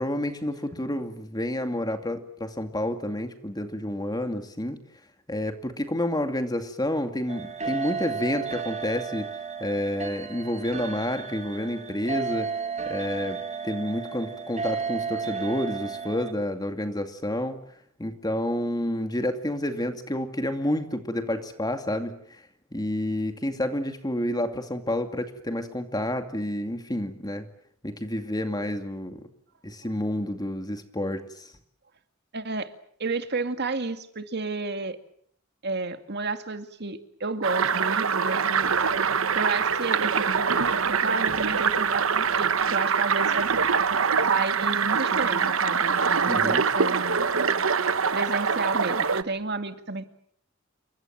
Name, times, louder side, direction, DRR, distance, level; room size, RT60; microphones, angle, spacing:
voice 1, 0.0-4.8 5.3-9.3 9.6-12.5 12.9-13.4 13.6-17.6 18.0-22.2 22.7-27.5 27.8-29.2 29.6-31.5 46.3-46.6, left 1 dB, 20° left, 7 dB, 2.4 m, -29 dB
sound 1, 7.3-16.3, right 5 dB, 35° right, 2.1 m, -33 dB
voice 2, 32.3-32.7 33.0-35.0 35.6-38.7 39.3-43.6 44.2-47.2 48.1-50.1, right 3 dB, 50° right, 8 dB, 2.2 m, -31 dB
sound 2, 37.4-49.2, right 6 dB, 70° right, 1.1 m, -24 dB
28.5 x 24.5 x 7.4 m, 0.63 s
head